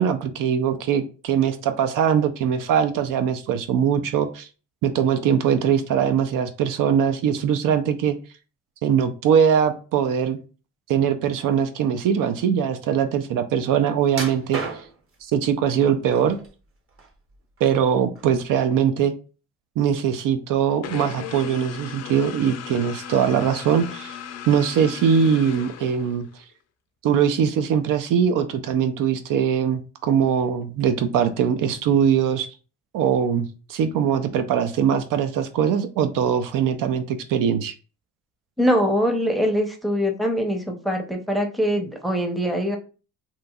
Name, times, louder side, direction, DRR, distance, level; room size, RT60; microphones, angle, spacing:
voice 1, 0.0-4.5 4.8-8.2 8.8-10.4 10.9-14.6 15.2-16.4 17.6-19.1 19.8-24.2 24.5-26.3 27.0-32.5 32.9-37.8, right 8 dB, 70° right, 8 dB, 0.5 m, -21 dB
sound 1, 14.1-15.1 15.8-16.5 16.9-17.8 18.2-18.3 18.9-19.0, right 4 dB, 40° right, 0.9 m, -33 dB
sound 2, 20.8-26.4, left 8 dB, 50° left, 0.4 m, -37 dB
voice 2, 38.6-42.8, equal, ahead, 3 dB, 0.6 m, -23 dB
2.9 x 2.6 x 2.3 m, 0.35 s
cardioid pair, 80°, 34 cm